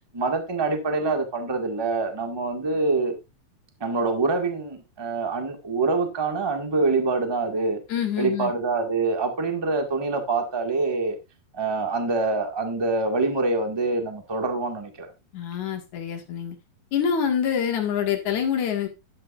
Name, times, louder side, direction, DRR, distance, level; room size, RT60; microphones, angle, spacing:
voice 1, 0.1-3.1 3.8-7.8 8.2-11.2 11.5-15.1, right 3 dB, 30° right, 4 dB, 0.4 m, -25 dB
voice 2, 7.9-8.5 15.3-16.6 16.9-18.9, left 8 dB, 60° left, 3 dB, 3.0 m, -26 dB
11.0 x 11.0 x 2.5 m, 0.24 s
omnidirectional pair, 4.0 m